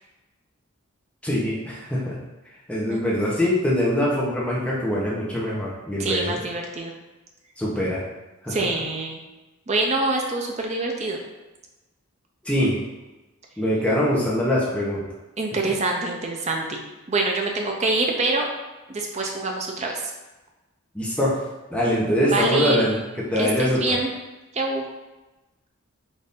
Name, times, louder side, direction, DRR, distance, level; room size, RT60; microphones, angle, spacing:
voice 1, 1.2-2.2 2.7-6.4 7.6-8.0 8.4-8.6 12.4-12.8 13.6-15.1 20.9-21.4 21.7-23.0 23.3-24.0, equal, 5° left, -6 dB, 0.7 m, -23 dB
voice 2, 6.0-6.9 8.5-9.2 9.7-11.2 15.4-16.8 17.1-18.5 18.9-20.0 22.3-22.9 23.4-24.1 24.5-24.8, right 2 dB, 30° right, 1 dB, 0.5 m, -25 dB
4.1 x 2.6 x 3.5 m, 1.1 s
head